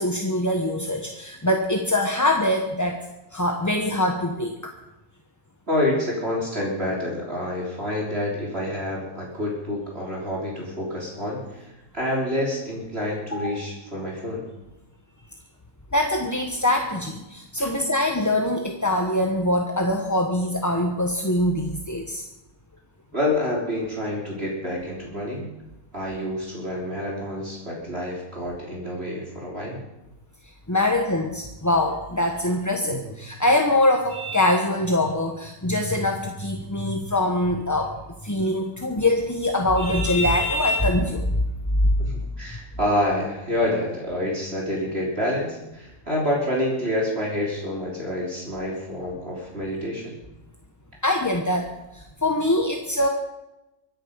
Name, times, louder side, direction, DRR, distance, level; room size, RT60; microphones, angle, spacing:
voice 1, 0.0-3.0 3.3-4.7 13.3-13.6 15.9-22.2 30.7-38.0 38.2-41.4 51.0-53.1, left 1 dB, 15° left, 3 dB, 1.0 m, -23 dB
voice 2, 5.7-14.4 17.6-17.7 23.1-25.5 25.9-29.8 32.8-33.1 42.0-50.2, left 1 dB, 40° right, -3 dB, 3.9 m, -28 dB
24.5 x 10.5 x 5.2 m, 0.95 s
omnidirectional pair, 1.7 m